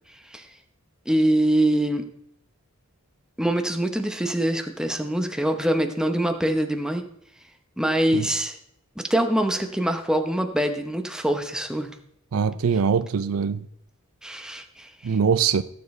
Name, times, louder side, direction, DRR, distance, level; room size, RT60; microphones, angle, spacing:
voice 1, 1.1-2.0 3.4-7.0 7.8-8.6 9.1-11.9 14.2-15.2, right 1 dB, 5° right, 0.8 m, -24 dB
voice 2, 12.3-13.7 15.0-15.6, right 6 dB, 70° right, 0.4 m, -22 dB
16.5 x 7.1 x 3.2 m
head